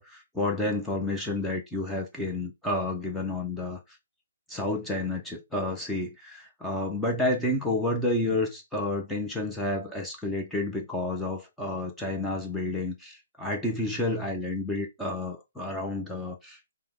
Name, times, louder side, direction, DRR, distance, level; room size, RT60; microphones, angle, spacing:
voice 1, 0.0-3.8 4.5-16.6, left 2 dB, 5° left, 0.4 m, -30 dB
3.3 x 2.0 x 3.5 m
hypercardioid pair, 165°, 0 cm